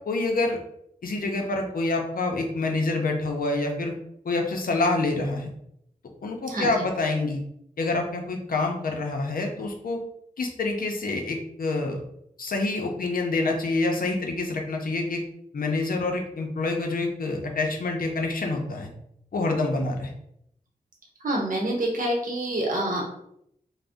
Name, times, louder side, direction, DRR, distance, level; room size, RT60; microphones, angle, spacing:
voice 1, 0.1-0.6 1.0-3.9 4.2-5.5 6.2-7.4 7.8-10.0 10.4-12.0 12.4-15.2 15.5-18.9 19.3-20.1, left 2 dB, 75° left, 2 dB, 0.5 m, -27 dB
voice 2, 21.2-23.0, right 1 dB, 65° right, -1 dB, 0.7 m, -26 dB
2.5 x 2.1 x 3.5 m, 0.74 s
wide cardioid pair, 70°, 15 cm